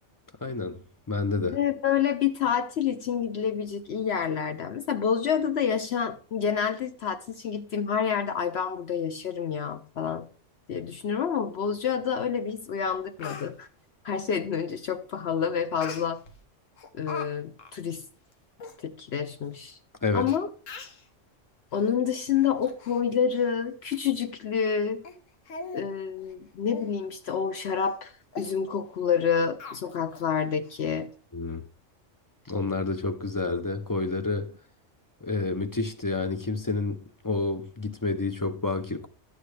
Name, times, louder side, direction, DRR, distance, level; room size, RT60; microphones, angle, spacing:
voice 1, 0.4-0.8 1.1-1.6 20.0-20.3 31.3-31.6 32.5-34.5 35.2-39.1, left 3 dB, 35° left, 0.3 m, -29 dB
voice 2, 1.4-10.2 10.7-13.7 14.0-16.2 16.9-18.0 18.8-19.8 20.1-20.5 21.7-25.0 25.7-31.1, left 7 dB, 65° left, 0.8 m, -28 dB
Speech, 12.5-12.6 12.9-13.5 15.8-16.4 16.8-17.3 17.6-17.8 18.3-18.4 18.6-18.8 19.5-19.6 20.3-20.4 20.7-21.0 21.7-21.9 22.3-23.0 23.3-23.5 23.9-24.0 24.6-24.7 25.0-25.2 25.5-25.9 26.2-26.3 26.7-26.9 27.3-27.4 27.8-28.0 28.3-28.5 29.6-30.3 30.6-30.7, left 4 dB, 90° left, 1.3 m, -41 dB
12.0 x 8.3 x 3.2 m
omnidirectional pair, 1.3 m